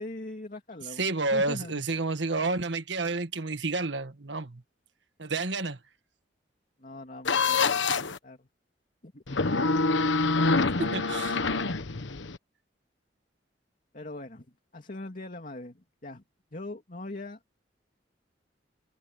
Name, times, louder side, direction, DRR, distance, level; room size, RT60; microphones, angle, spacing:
voice 1, 0.0-1.8 6.8-7.8 8.2-8.5 9.0-9.4 13.9-16.2 16.5-17.4, left 2 dB, 45° left, 2.6 m, -41 dB
voice 2, 1.0-4.6 5.2-5.8 10.8-11.4, right 3 dB, 75° right, 1.6 m, -30 dB
sound 1, 7.2-8.2 9.3-12.4, left 3 dB, 90° left, 1.2 m, -26 dB
open air
head